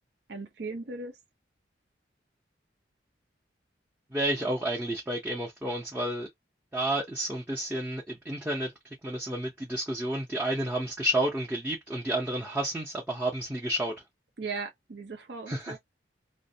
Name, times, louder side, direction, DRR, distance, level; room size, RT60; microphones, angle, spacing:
voice 1, 0.3-1.2 14.4-15.8, right 4 dB, 65° right, 0.6 m, -38 dB
voice 2, 4.1-6.3 6.7-8.7 9.0-13.9 15.5-15.8, right 1 dB, 10° right, 0.6 m, -30 dB
2.5 x 2.1 x 2.6 m
head